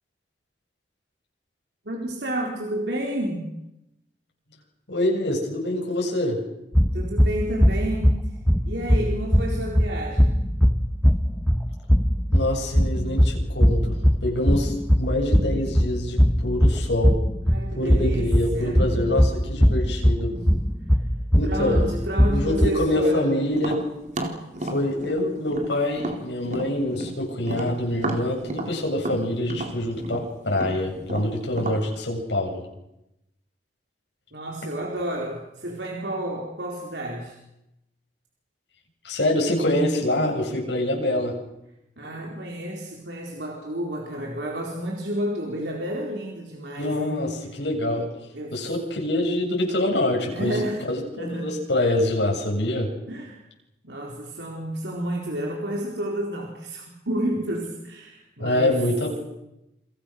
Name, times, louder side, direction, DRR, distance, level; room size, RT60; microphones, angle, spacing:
voice 1, 1.8-3.5 6.9-8.4 8.7-10.4 17.4-18.9 20.3-20.5 21.4-23.3 34.3-37.4 42.0-47.2 48.3-48.6 50.3-50.8 51.2-51.6 53.1-53.4 53.8-58.8, right 1 dB, 70° right, 0 dB, 4.2 m, -30 dB
voice 2, 4.9-6.4 12.3-17.2 17.7-20.3 21.3-21.9 22.3-23.8 24.6-32.6 39.0-41.3 46.8-48.1 48.5-52.9 58.4-59.2, left 1 dB, 75° left, 0 dB, 7.9 m, -25 dB
sound 1, 6.7-22.7, equal, 5° left, 1.1 m, -21 dB
Tap, 23.5-27.2 27.4-31.8, right 1 dB, 45° right, 4.1 m, -32 dB
29.0 x 26.0 x 6.5 m, 0.88 s
head